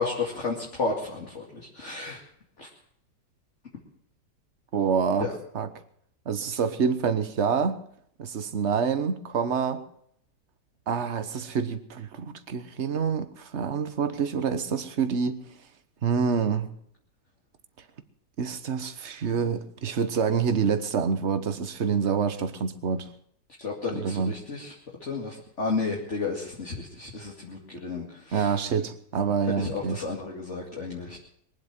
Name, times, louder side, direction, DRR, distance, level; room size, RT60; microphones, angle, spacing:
voice 1, 0.0-2.2 2.6-2.7 5.2-5.3 23.6-24.7 25.0-28.5 29.5-31.2, left 4 dB, 40° left, -2 dB, 2.6 m, -32 dB
voice 2, 4.7-5.3 5.5-5.7 6.2-7.8 8.2-9.8 10.9-15.4 16.0-16.7 18.4-23.1 23.9-24.4 28.3-30.0, right 6 dB, 45° right, 10 dB, 1.3 m, -27 dB
22.5 x 8.1 x 7.4 m, 0.67 s
omnidirectional pair, 1.9 m